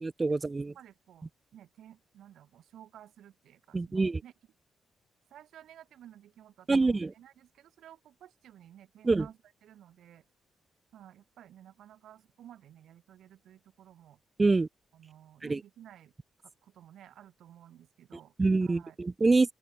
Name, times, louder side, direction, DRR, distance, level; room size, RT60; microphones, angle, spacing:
voice 1, 0.0-0.7 3.7-4.2 6.7-7.1 9.0-9.2 14.4-14.7 15.5-15.6 18.4-19.5, right 3 dB, 20° right, 0.5 m, -25 dB
voice 2, 0.7-4.3 5.3-10.2 10.9-14.2 14.9-16.1 16.4-18.3 18.6-19.0, right 11 dB, 85° right, 6.3 m, -54 dB
open air
cardioid pair, 140°, 0 cm